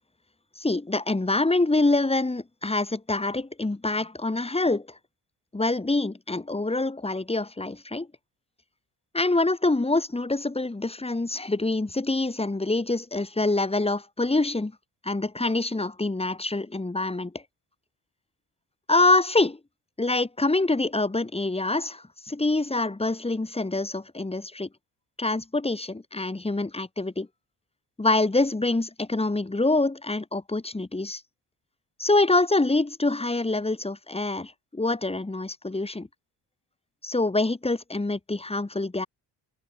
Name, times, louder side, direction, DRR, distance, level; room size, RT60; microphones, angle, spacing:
voice 1, 0.6-4.9 5.5-8.1 9.1-14.7 15.0-17.4 18.9-19.6 20.0-24.7 25.2-27.3 28.0-31.2 32.0-36.1 37.0-39.1, left 2 dB, 15° left, 2.5 m, -25 dB
cardioid pair, 95°, 43 cm